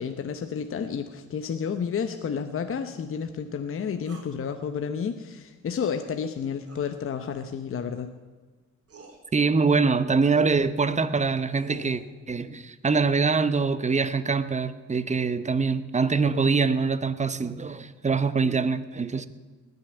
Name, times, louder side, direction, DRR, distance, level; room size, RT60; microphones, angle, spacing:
voice 1, 0.0-8.1, left 6 dB, 45° left, 0.9 m, -31 dB
sound 1, 4.1-4.3 6.6-6.9 8.2-8.3 8.9-9.2 11.2-12.0, right 4 dB, 50° right, 3.4 m, -46 dB
voice 2, 9.3-19.3, right 4 dB, 25° right, 0.9 m, -24 dB
19.5 x 6.8 x 9.0 m
cardioid pair, 90°, 30 cm